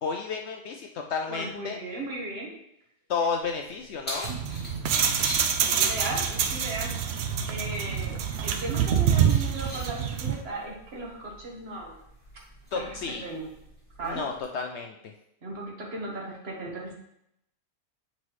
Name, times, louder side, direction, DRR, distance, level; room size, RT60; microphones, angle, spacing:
voice 1, 0.0-1.8 3.1-4.3 12.7-13.2 14.0-14.9, left 5 dB, 65° left, 3 dB, 0.7 m, -31 dB
voice 2, 1.3-2.6 5.6-12.0 12.7-13.5 14.0-14.2 15.4-16.9, right 2 dB, 45° right, -2 dB, 1.5 m, -36 dB
Keys jangling, 3.4-14.4, equal, 5° left, 1.5 m, -44 dB
sound 1, 4.2-10.4, right 8 dB, 70° right, 0.6 m, -26 dB
7.4 x 4.0 x 3.1 m, 0.76 s
omnidirectional pair, 1.6 m